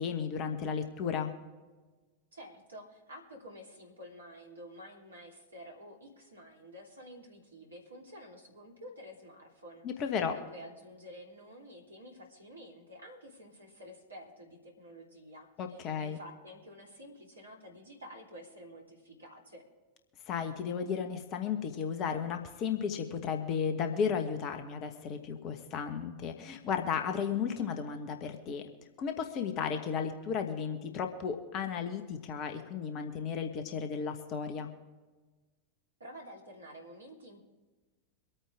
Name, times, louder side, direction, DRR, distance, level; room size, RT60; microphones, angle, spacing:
voice 1, 0.0-1.3 9.8-10.3 15.6-16.2 20.3-28.7 29.0-34.7, left 7 dB, 35° left, 6 dB, 1.4 m, -34 dB
voice 2, 2.3-19.6 36.0-37.4, equal, 75° right, 0 dB, 2.9 m, -50 dB
24.5 x 8.9 x 3.6 m, 1.3 s
figure-of-eight pair, 90°, 0 cm